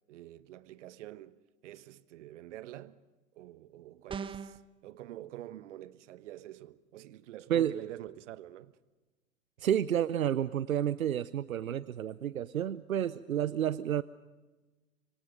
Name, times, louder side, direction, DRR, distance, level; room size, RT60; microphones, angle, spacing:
voice 1, 0.1-1.4 1.6-3.0 3.3-8.8, right 13 dB, 60° right, 1.2 m, -46 dB
sound 1, 4.1-4.6, right 6 dB, 15° right, 0.7 m, -39 dB
voice 2, 9.6-14.0, right 10 dB, 80° right, 0.7 m, -30 dB
25.5 x 25.0 x 5.2 m
hypercardioid pair, 105°, 41 cm